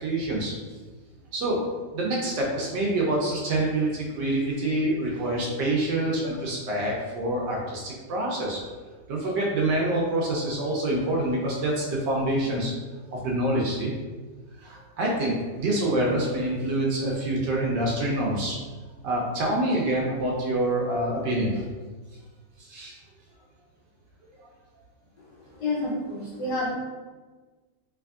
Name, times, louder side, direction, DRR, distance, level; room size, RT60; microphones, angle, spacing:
voice 1, 0.0-0.5 1.3-1.6 1.9-8.6 9.1-12.7 13.1-13.9 14.6-18.6 19.0-21.6 22.6-23.0, right 1 dB, 70° right, -3 dB, 1.2 m, -26 dB
voice 2, 25.6-26.7, left 2 dB, 65° left, -5 dB, 1.3 m, -28 dB
3.3 x 3.3 x 2.4 m, 1.3 s
omnidirectional pair, 2.1 m